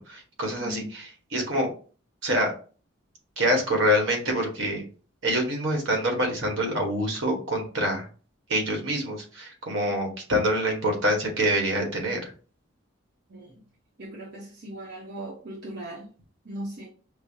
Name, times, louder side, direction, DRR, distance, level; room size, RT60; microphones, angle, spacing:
voice 1, 0.0-1.7 2.2-2.5 3.4-4.8 5.2-8.1 8.5-12.3, equal, 80° right, 1 dB, 1.3 m, -26 dB
voice 2, 13.3-13.6 14.0-16.1 16.4-16.9, right 1 dB, 60° right, -3 dB, 0.8 m, -38 dB
5.3 x 2.1 x 2.7 m, 0.39 s
head